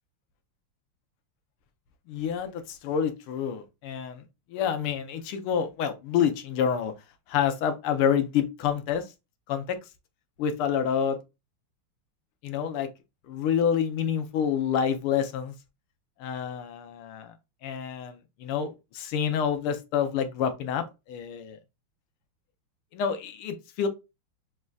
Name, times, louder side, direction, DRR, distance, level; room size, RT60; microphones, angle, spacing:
voice 1, 2.1-4.2 4.5-6.9 7.3-9.1 9.5-9.8 10.4-11.2 12.4-12.9 13.3-15.5 16.2-17.3 17.6-21.6 22.9-23.9, left 8 dB, 85° left, 1.7 m, -28 dB
6.4 x 3.2 x 2.3 m
omnidirectional pair, 2.4 m